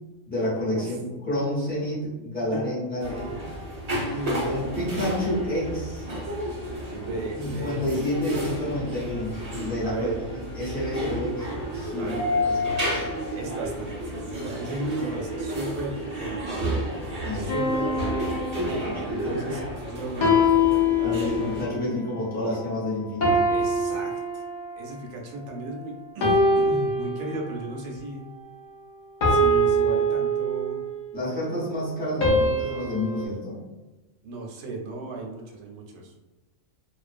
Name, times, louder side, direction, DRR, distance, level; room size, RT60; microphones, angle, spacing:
voice 1, 0.3-3.4 4.4-6.1 7.4-13.1 17.2-17.6 18.7-19.4 21.0-23.3 31.1-33.6, left 1 dB, 10° left, -10 dB, 0.8 m, -29 dB
sound 1, 3.0-21.6, equal, 55° right, 0.4 m, -31 dB
voice 2, 4.1-4.4 6.9-8.1 9.8-10.1 11.9-12.2 13.4-16.7 17.3-18.4 19.3-21.5 22.5-22.6 23.5-24.4 24.8-28.3 29.3-30.8 32.1-32.6 34.2-36.1, right 2 dB, 75° right, 0 dB, 0.9 m, -36 dB
sound 2, 17.5-19.1 20.2-21.7 23.2-24.9 26.2-27.7 29.2-31.0 32.2-33.3, left 1 dB, 75° left, 0.4 m, -23 dB
2.4 x 2.1 x 2.4 m, 1.1 s
omnidirectional pair, 1.4 m